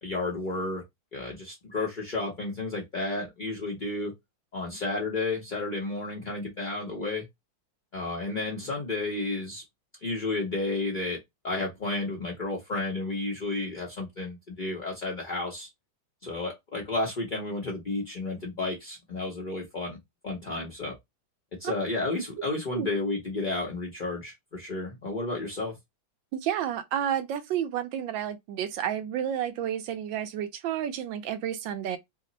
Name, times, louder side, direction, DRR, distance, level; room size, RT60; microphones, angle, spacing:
voice 1, 0.0-0.8 1.1-4.1 4.5-7.3 7.9-9.6 10.0-15.7 16.2-20.0 20.2-21.0 21.6-25.8, left 2 dB, 55° left, 0.5 m, -32 dB
voice 2, 26.3-32.0, right 10 dB, 75° right, 1.3 m, -31 dB
3.5 x 2.0 x 3.9 m
omnidirectional pair, 2.2 m